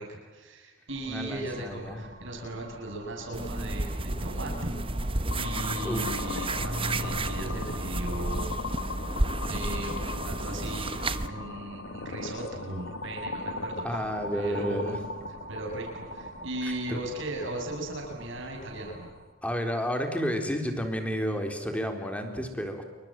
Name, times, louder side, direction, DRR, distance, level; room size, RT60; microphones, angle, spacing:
voice 1, 0.0-4.8 5.3-8.5 9.1-9.2 9.5-15.0 15.5-19.1, right 1 dB, 65° right, 1 dB, 7.4 m, -37 dB
sound 1, 0.9-19.1, right 2 dB, 40° right, 8.0 m, -49 dB
voice 2, 1.1-2.0 5.8-6.0 13.8-15.0 16.6-17.0 19.4-22.8, equal, 5° left, 5 dB, 4.0 m, -31 dB
sound 2, 3.3-11.3, right 2 dB, 25° right, 1.1 m, -31 dB
sound 3, 5.3-19.3, left 3 dB, 65° left, 1.4 m, -39 dB
28.5 x 24.5 x 7.8 m, 1.3 s
head